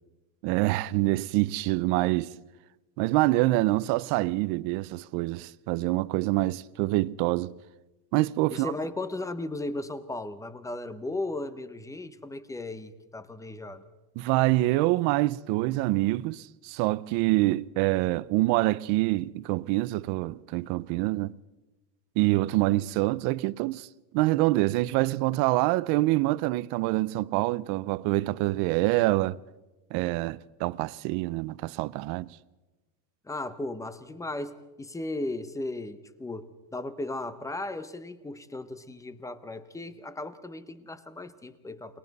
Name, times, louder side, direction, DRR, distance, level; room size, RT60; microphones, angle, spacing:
voice 1, 0.4-2.3 3.0-7.6 8.1-8.7 14.2-21.3 22.2-23.9 24.1-29.4 29.9-32.3, right 19 dB, 55° right, 0.7 m, -26 dB
voice 2, 8.5-13.8 33.2-42.0, left 2 dB, 5° left, 0.7 m, -36 dB
29.5 x 22.0 x 4.1 m
cardioid pair, 165°, 47 cm